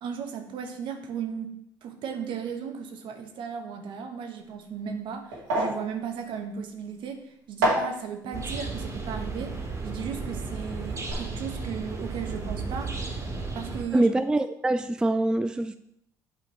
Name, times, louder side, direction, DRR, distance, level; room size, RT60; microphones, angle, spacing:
voice 1, 0.0-1.5 1.8-13.0 13.5-14.1, right 7 dB, 60° right, 5 dB, 1.0 m, -36 dB
sound 1, 4.4-10.6 10.8-11.1, right 1 dB, 85° right, 1.8 m, -32 dB
sound 2, 8.3-13.8, right 3 dB, 35° right, 1.7 m, -34 dB
voice 2, 13.9-15.8, right 2 dB, 10° right, 10 dB, 0.3 m, -24 dB
8.5 x 5.1 x 3.1 m, 0.78 s
hypercardioid pair, 55°, 9 cm